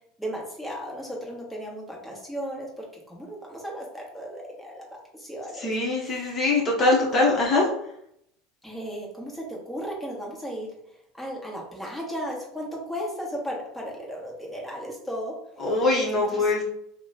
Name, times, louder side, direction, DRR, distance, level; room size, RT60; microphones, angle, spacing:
voice 1, 0.2-4.9 5.1-6.4 7.1-7.4 8.6-10.7 11.2-15.3 16.1-16.5, equal, 5° left, -3 dB, 1.1 m, -35 dB
voice 2, 5.6-7.7 15.6-16.6, left 2 dB, 35° left, -3 dB, 0.9 m, -22 dB
2.9 x 2.1 x 3.8 m, 0.75 s
supercardioid pair, 95°, 0 cm